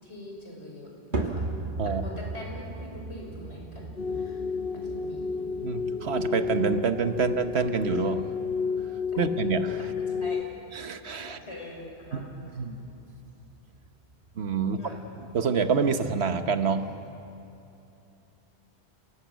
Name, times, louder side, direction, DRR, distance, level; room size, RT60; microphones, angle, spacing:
voice 1, 0.0-1.5 1.8-4.4 4.7-5.4 9.1-9.2 10.1-10.5 11.3-12.3 12.6-12.7 14.6-15.0, left 1 dB, 85° left, -1 dB, 5.5 m, -43 dB
sound 1, 1.1-17.6, right 3 dB, 50° right, 1.7 m, -40 dB
sound 2, 4.0-10.4, left 5 dB, 60° left, 1.0 m, -31 dB
voice 2, 5.6-8.2 9.2-9.8 10.7-11.4 12.1-12.3 12.5-12.7 14.4-14.8 15.2-16.9, right 5 dB, 75° right, 9 dB, 1.4 m, -27 dB
28.5 x 18.5 x 8.2 m, 2.8 s
omnidirectional pair, 1.1 m